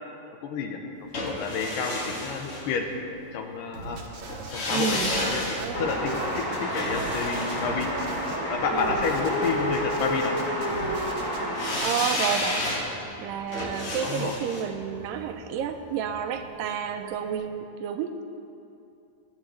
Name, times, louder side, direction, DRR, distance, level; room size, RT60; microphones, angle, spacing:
voice 1, 0.4-2.9 3.3-4.0 4.5-7.9 8.5-10.5 14.0-14.4, left 5 dB, 80° left, 3 dB, 2.4 m, -30 dB
sound 1, 1.1-3.3 4.3-8.5 11.5-16.5 16.8-16.9, left 1 dB, 55° left, 3.4 m, -32 dB
sound 2, 3.7-4.5 4.9-8.4 8.8-11.4, right 3 dB, 65° right, 1.2 m, -40 dB
voice 2, 4.7-5.1 5.4-6.0 8.7-9.0 11.8-12.7 13.2-18.2, right 8 dB, 85° right, 7 dB, 2.3 m, -30 dB
sound 3, 5.7-11.8, equal, 30° left, 1.9 m, -29 dB
18.5 x 8.5 x 3.2 m, 2.7 s
omnidirectional pair, 3.9 m